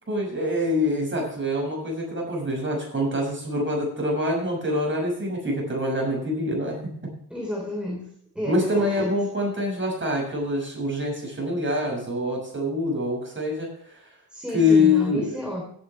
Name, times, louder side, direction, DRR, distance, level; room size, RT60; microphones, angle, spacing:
voice 1, 0.1-7.1 8.4-14.0 14.5-15.4, left 2 dB, 30° right, -1 dB, 6.2 m, -25 dB
voice 2, 7.3-8.1 8.4-9.1 14.3-15.6, left 1 dB, 5° right, -2 dB, 3.5 m, -31 dB
17.0 x 9.3 x 3.3 m, 0.65 s
wide cardioid pair, 170°, 38 cm